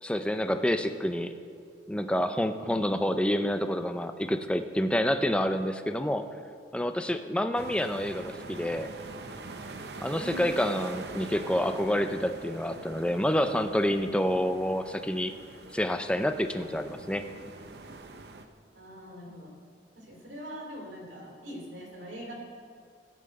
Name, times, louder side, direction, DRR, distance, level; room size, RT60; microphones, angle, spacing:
voice 1, 0.0-1.3 1.9-6.2 6.7-8.9 10.0-15.3 15.7-17.2, equal, 5° left, 8 dB, 0.4 m, -28 dB
voice 2, 2.6-3.0 7.3-7.6 10.2-10.8 18.7-19.6 20.0-22.3, equal, 85° right, 0 dB, 3.0 m, -43 dB
sound 1, 7.5-18.4, right 3 dB, 60° right, 0.7 m, -44 dB
15.0 x 5.6 x 7.7 m, 2.3 s
head